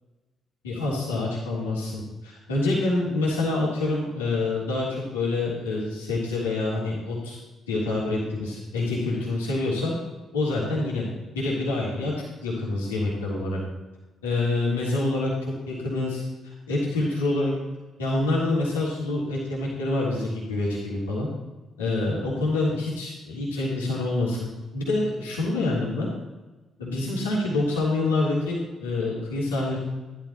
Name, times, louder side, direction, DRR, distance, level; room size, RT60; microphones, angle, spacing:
voice 1, 0.6-7.4 7.7-9.9 10.3-11.1 11.3-12.1 12.4-13.6 14.2-15.3 15.7-16.2 16.7-17.5 18.0-21.3 21.8-26.1 26.8-29.8, left 2 dB, 85° left, -6 dB, 3.4 m, -26 dB
14.5 x 12.5 x 4.4 m, 1.2 s
figure-of-eight pair, 40°, 0 cm